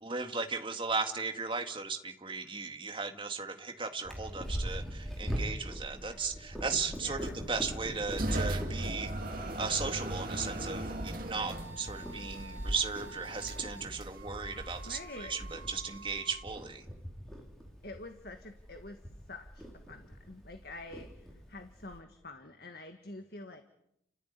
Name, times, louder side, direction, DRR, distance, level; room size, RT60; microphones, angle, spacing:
voice 1, 0.0-9.1 9.6-16.9, right 4 dB, 25° right, 5 dB, 2.0 m, -36 dB
Purr, 4.0-22.0, equal, ahead, 4.5 m, -43 dB
voice 2, 7.0-7.4 14.9-15.3 17.8-19.0 19.3-23.6, left 2 dB, 55° left, 7 dB, 1.7 m, -47 dB
sound 1, 7.2-16.3, right 1 dB, 45° right, 2.7 m, -38 dB
sound 2, 8.7-16.4, right 3 dB, 90° right, 2.7 m, -52 dB
30.0 x 14.0 x 9.7 m, 0.78 s
head